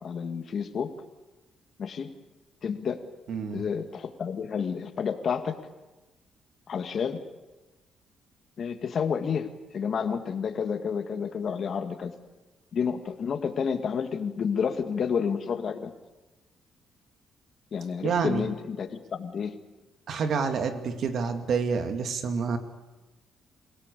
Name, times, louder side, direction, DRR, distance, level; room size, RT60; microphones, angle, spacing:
voice 1, 0.0-0.9 1.8-2.1 2.6-3.0 3.5-5.6 6.7-7.2 8.6-12.1 12.7-15.9 17.7-19.5, left 6 dB, 55° left, 7 dB, 2.1 m, -30 dB
voice 2, 3.3-3.6 18.0-18.5 20.1-22.6, right 5 dB, 65° right, 7 dB, 2.4 m, -28 dB
27.5 x 17.5 x 8.5 m, 1.1 s
cardioid pair, 90°, 0 cm